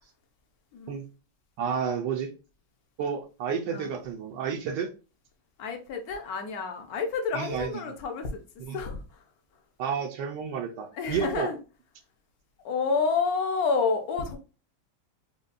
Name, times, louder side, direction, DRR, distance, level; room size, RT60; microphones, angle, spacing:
voice 1, 1.6-2.3 3.0-4.9 7.3-7.7 8.6-8.8 9.8-11.5, right 7 dB, 75° right, 1.3 m, -31 dB
voice 2, 5.6-8.4 8.7-9.2 10.9-11.6 12.6-14.4, left 4 dB, 60° left, 1.2 m, -29 dB
5.1 x 2.3 x 2.5 m
omnidirectional pair, 1.9 m